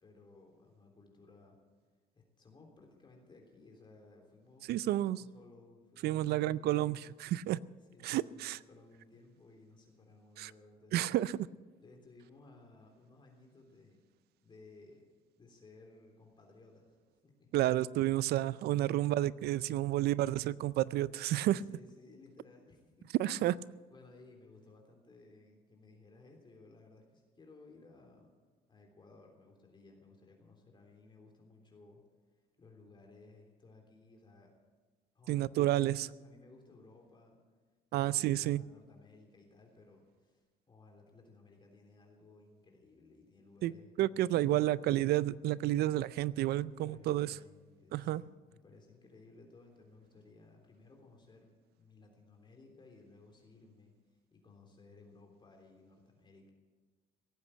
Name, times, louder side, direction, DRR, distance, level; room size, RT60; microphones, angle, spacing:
voice 1, 0.0-1.6 2.2-7.0 7.9-11.0 11.8-15.1 15.4-16.9 17.2-17.5 21.6-23.2 23.9-28.3 28.7-32.0 32.6-34.5 35.2-37.4 37.9-44.7 46.7-51.5 51.8-54.0 54.3-56.5, left 3 dB, 25° left, 1 dB, 3.4 m, -59 dB
voice 2, 4.7-5.2 6.0-7.6 8.0-8.6 10.4-10.5 10.9-11.4 17.5-21.6 23.2-23.6 35.3-36.1 37.9-38.6 43.6-43.7 44.0-47.4 47.9-48.2, right 14 dB, 70° right, 19 dB, 0.5 m, -30 dB
17.5 x 8.5 x 9.0 m, 1.4 s
cardioid pair, 110°, 17 cm